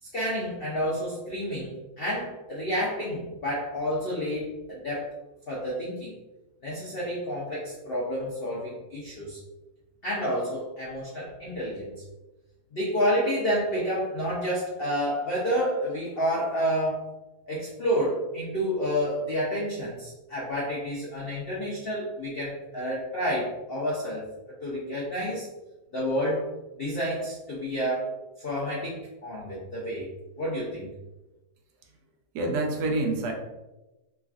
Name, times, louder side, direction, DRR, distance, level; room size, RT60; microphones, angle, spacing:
voice 1, 0.0-5.1 5.5-6.2 6.6-9.4 10.0-12.0 12.7-17.1 17.5-24.3 24.6-25.5 25.9-26.5 26.8-28.1 28.4-30.1 30.4-30.9, equal, 80° left, -6 dB, 0.5 m, -29 dB
voice 2, 32.3-33.3, right 2 dB, 70° right, 2 dB, 1.0 m, -27 dB
3.1 x 2.3 x 2.4 m, 1.0 s
omnidirectional pair, 1.8 m